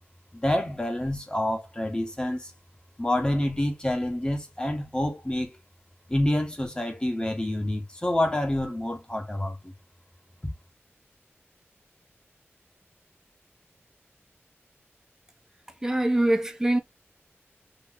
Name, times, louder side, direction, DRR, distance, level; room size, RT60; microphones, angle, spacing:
voice 1, 0.3-2.5 3.0-5.5 6.1-9.7, left 1 dB, 20° left, 1.2 m, -27 dB
voice 2, 15.8-16.8, right 1 dB, 10° right, 0.7 m, -23 dB
3.0 x 2.7 x 3.7 m
wide cardioid pair, 50°, 5 cm